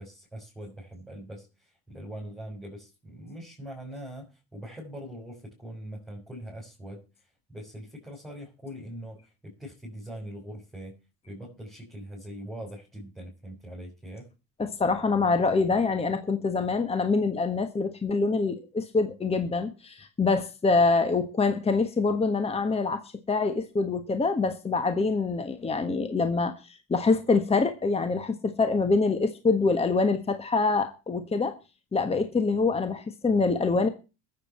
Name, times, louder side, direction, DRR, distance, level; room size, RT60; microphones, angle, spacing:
voice 1, 0.0-10.9 11.3-14.3, right 1 dB, ahead, 6.5 m, -42 dB
voice 2, 14.6-23.0 23.3-31.6 31.9-33.9, left 4 dB, 15° left, 1.4 m, -25 dB
21.0 x 7.9 x 4.4 m
cardioid pair, 125°, 38 cm